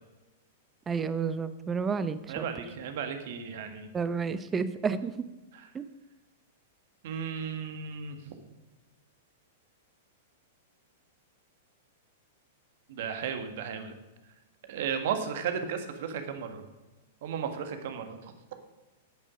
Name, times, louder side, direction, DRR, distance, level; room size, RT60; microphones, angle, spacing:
voice 1, 0.9-2.4 3.9-5.1 5.7-5.9, right 5 dB, 15° right, 14 dB, 0.7 m, -30 dB
voice 2, 2.3-3.9 5.5-5.7 7.0-8.4 12.9-13.9 14.7-16.6 17.2-18.3, right 7 dB, 50° right, 7 dB, 1.6 m, -35 dB
10.5 x 9.2 x 5.0 m, 1.1 s
figure-of-eight pair, 100°, 0 cm